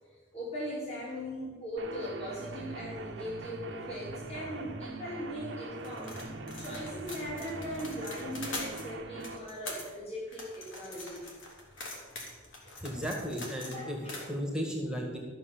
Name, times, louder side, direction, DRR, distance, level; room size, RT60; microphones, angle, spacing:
voice 1, 0.3-11.2 12.6-12.8 13.7-14.3, equal, 30° left, -6 dB, 3.6 m, -39 dB
sound 1, 1.8-9.4, right 2 dB, 65° right, 1.1 m, -42 dB
sound 2, 5.8-8.8 9.2-9.9 10.3-13.7 14.1-14.3, left 2 dB, 65° left, 2.7 m, -43 dB
voice 2, 12.8-15.2, equal, 5° right, 0 dB, 1.8 m, -35 dB
12.5 x 7.0 x 7.1 m, 1.4 s
head